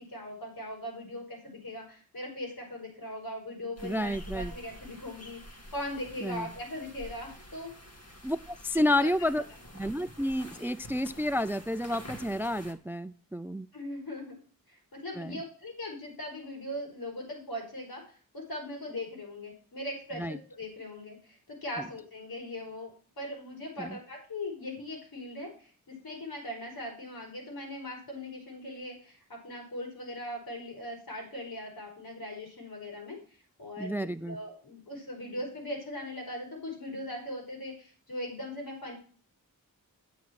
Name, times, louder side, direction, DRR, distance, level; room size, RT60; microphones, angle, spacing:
voice 1, 0.0-7.7 8.7-9.3 13.7-14.4 14.7-18.0 18.3-22.9 23.2-33.2 33.6-33.9 34.2-38.9, left 1 dB, 80° left, -1 dB, 5.5 m, -40 dB
sound 1, 3.8-12.7, equal, 45° left, 1.9 m, -48 dB
voice 2, 3.8-4.5 6.2-6.5 8.2-9.4 9.8-13.7 15.2-15.4 20.2-20.4 23.8-23.9 33.8-34.4, left 1 dB, 5° right, 15 dB, 0.4 m, -30 dB
9.2 x 8.1 x 4.7 m, 0.41 s
wide cardioid pair, 80°, 36 cm